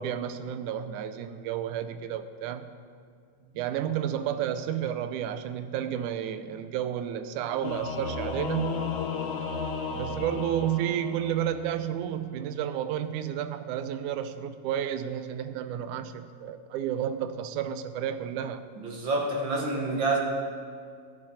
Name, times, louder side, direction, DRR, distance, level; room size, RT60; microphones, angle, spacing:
voice 1, 0.0-2.7 3.6-8.9 9.9-18.6, right 10 dB, 90° right, 11 dB, 2.1 m, -31 dB
Singing / Musical instrument, 7.6-11.7, left 5 dB, 75° left, 2.3 m, -34 dB
voice 2, 18.8-20.2, right 2 dB, 50° right, -1 dB, 1.6 m, -27 dB
15.0 x 8.7 x 4.9 m, 2.2 s
omnidirectional pair, 3.4 m